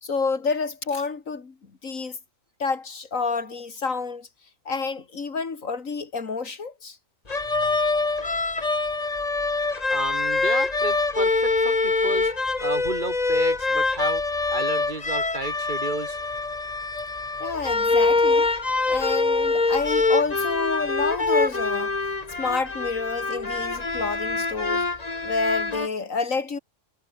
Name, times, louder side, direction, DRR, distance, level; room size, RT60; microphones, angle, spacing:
voice 1, 0.0-1.5 1.8-2.2 2.6-4.3 4.7-7.0 17.4-18.5 18.9-22.0 22.4-24.9 25.2-26.6, left 4 dB, 80° left, 2.6 m, -29 dB
Violin sound melody on E string, 7.3-25.9, left 3 dB, 30° left, 1.8 m, -24 dB
voice 2, 9.9-12.3 12.6-14.2 14.5-16.2, right 3 dB, 35° right, 2.6 m, -32 dB
omnidirectional pair, 1.4 m